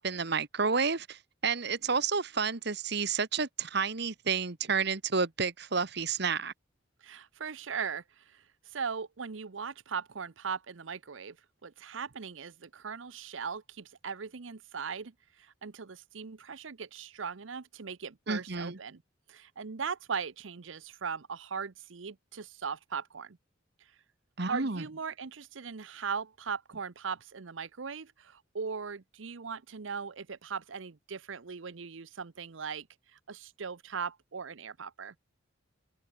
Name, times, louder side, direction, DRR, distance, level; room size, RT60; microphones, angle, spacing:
voice 1, 0.0-6.5 18.3-18.8 24.4-24.8, right 5 dB, 60° right, 1.4 m, -30 dB
voice 2, 7.0-11.4 11.6-19.0 19.3-23.4 23.8-24.0 24.5-35.1, right 6 dB, 80° right, 0.8 m, -39 dB
open air
head